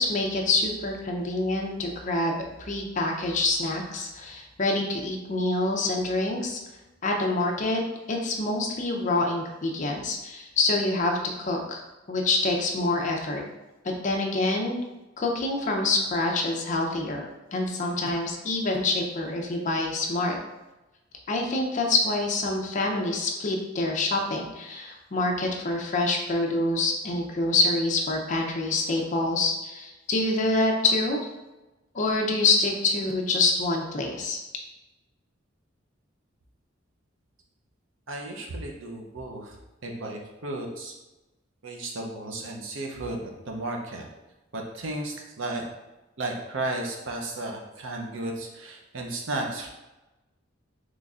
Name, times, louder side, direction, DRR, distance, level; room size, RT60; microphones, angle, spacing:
voice 1, 0.0-6.6 7.0-7.8 8.1-11.8 12.1-13.4 14.0-14.8 15.2-20.4 21.3-31.2 31.9-34.4, left 2 dB, 40° left, 1 dB, 0.5 m, -26 dB
voice 2, 38.1-39.6 39.8-40.9 41.6-44.1 44.5-45.6 46.2-49.7, right 2 dB, 80° right, 1 dB, 0.6 m, -34 dB
4.0 x 3.1 x 2.4 m, 1.0 s
head